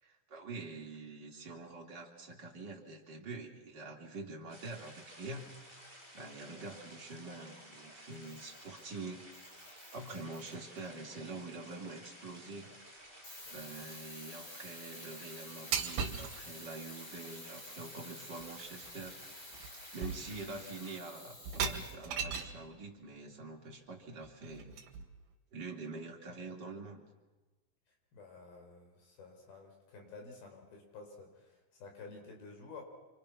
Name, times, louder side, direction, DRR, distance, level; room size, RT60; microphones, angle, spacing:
voice 1, 0.0-5.7 6.1-9.3 9.9-12.7 13.5-19.2 19.9-24.8 25.5-27.0, right 3 dB, 30° right, 0 dB, 3.3 m, -46 dB
sound 1, 4.5-21.0, equal, 5° left, 5.0 m, -54 dB
Camera, 8.1-8.9 9.3-10.9 13.2-22.0, left 1 dB, 35° left, 7.4 m, -51 dB
sound 2, 15.7-16.4 18.4-18.5 18.8-19.1 19.5-19.7 20.0-20.6 21.4-22.6 24.2-25.2, right 6 dB, 80° right, 3.6 m, -37 dB
voice 2, 28.1-32.8, left 4 dB, 75° left, 2 dB, 6.2 m, -51 dB
28.5 x 25.5 x 6.0 m, 1.2 s
omnidirectional pair, 4.3 m